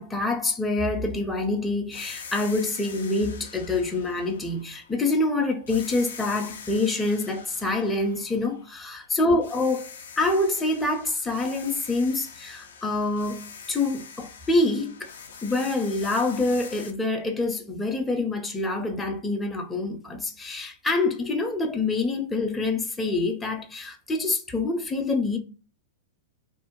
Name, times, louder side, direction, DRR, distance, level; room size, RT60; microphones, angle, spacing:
voice 1, 0.0-9.9 10.2-13.4 13.7-15.1 15.4-25.4, left 2 dB, 10° left, 0.5 m, -26 dB
sound 1, 1.9-5.2 5.7-9.0 9.4-16.9, left 6 dB, 80° left, 0.4 m, -44 dB
2.4 x 2.0 x 3.0 m
hypercardioid pair, 110°, 0 cm